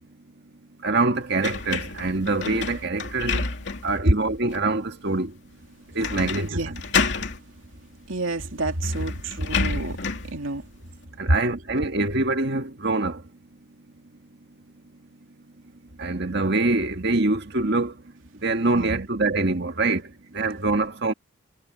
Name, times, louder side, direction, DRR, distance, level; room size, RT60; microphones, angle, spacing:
voice 1, 0.8-3.4 3.8-5.3 6.0-6.8 11.2-13.2 16.0-17.9 18.4-20.0 20.3-21.1, right 2 dB, 55° right, 1.8 m, -24 dB
sound 1, 1.4-4.0 4.5-4.6 6.0-6.5 6.7-7.4 8.4-8.5 8.8-10.3, left 4 dB, 60° left, 2.8 m, -28 dB
voice 2, 6.3-6.8 8.1-10.0 10.3-10.6 11.3-11.4 18.7-19.1, right 1 dB, 80° right, 2.7 m, -27 dB
head